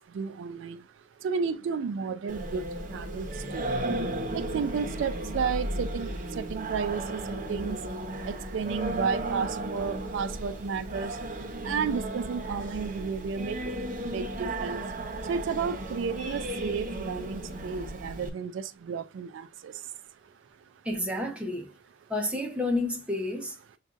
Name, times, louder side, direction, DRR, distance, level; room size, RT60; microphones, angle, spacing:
voice 1, 0.1-0.8 1.2-2.7 2.9-3.3 3.5-3.6 4.3-7.2 7.5-7.8 8.3-11.2 11.6-13.6 14.0-14.8 15.3-19.7, right 6 dB, 70° right, 0.3 m, -32 dB
Singing, 2.3-18.3, right 1 dB, 40° right, 0.9 m, -34 dB
voice 2, 20.8-21.7 22.1-23.6, left 2 dB, 5° right, 0.8 m, -30 dB
7.1 x 2.4 x 2.5 m
head